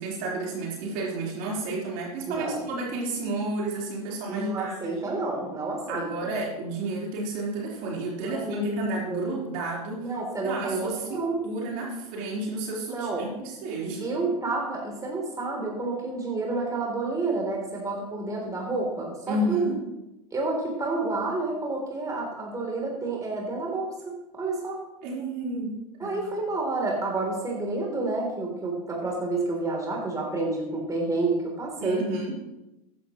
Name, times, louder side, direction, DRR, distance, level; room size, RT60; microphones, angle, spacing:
voice 1, 0.0-5.2 5.9-10.1 10.4-14.3 19.3-19.8 25.0-25.7 26.0-26.3 31.8-32.3, right 2 dB, 55° right, -3 dB, 4.0 m, -31 dB
voice 2, 2.3-2.7 4.3-6.4 8.3-9.3 10.0-11.4 12.9-13.3 14.0-19.7 20.3-24.8 26.0-32.0, right 3 dB, 15° right, -1 dB, 3.3 m, -29 dB
14.5 x 11.0 x 3.1 m, 0.95 s
hypercardioid pair, 90°, 20 cm